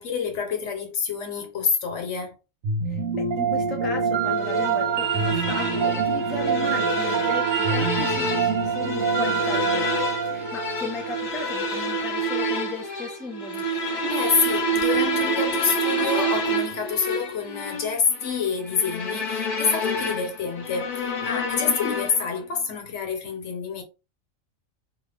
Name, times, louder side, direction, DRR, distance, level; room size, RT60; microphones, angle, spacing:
voice 1, 0.0-2.4 14.0-23.8, left 5 dB, 70° left, 1.2 m, -27 dB
sound 1, 2.6-11.8, right 6 dB, 65° right, 1.0 m, -26 dB
voice 2, 2.9-13.7, left 3 dB, ahead, 0.4 m, -36 dB
sound 2, 4.4-22.4, right 1 dB, 40° left, 0.9 m, -28 dB
2.9 x 2.3 x 3.3 m
omnidirectional pair, 1.3 m